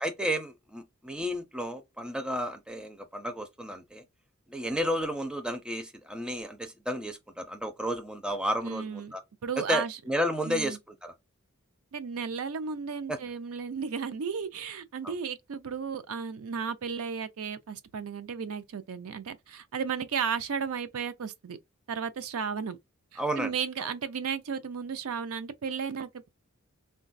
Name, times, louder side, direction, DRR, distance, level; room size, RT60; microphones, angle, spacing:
voice 1, 0.0-4.0 4.5-9.2 9.6-11.1 13.1-13.2 15.0-15.1 23.2-23.5, equal, 5° right, 0.4 m, -32 dB
voice 2, 8.6-9.1 9.4-10.0 10.5-10.8 11.9-21.6 21.9-22.8 23.1-26.3, right 6 dB, 70° right, 0.5 m, -34 dB
3.8 x 2.2 x 2.5 m
head